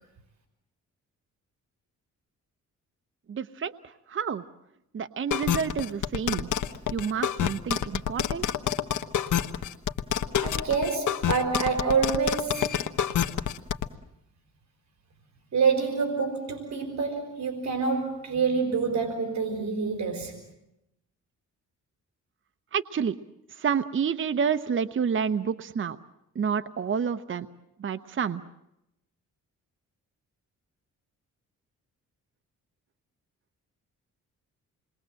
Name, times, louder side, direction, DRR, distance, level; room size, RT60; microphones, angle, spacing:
voice 1, 3.3-4.4 4.9-6.5 6.9-8.5 22.7-23.2 23.5-26.0 26.3-27.5 27.8-28.4, right 7 dB, 40° right, 10 dB, 0.9 m, -29 dB
sound 1, 5.3-13.9, left 9 dB, 75° left, 1.2 m, -27 dB
voice 2, 10.4-12.8 15.5-20.4, right 5 dB, 60° right, 5 dB, 4.3 m, -27 dB
28.0 x 21.5 x 7.7 m, 0.84 s
cardioid pair, 115°, 31 cm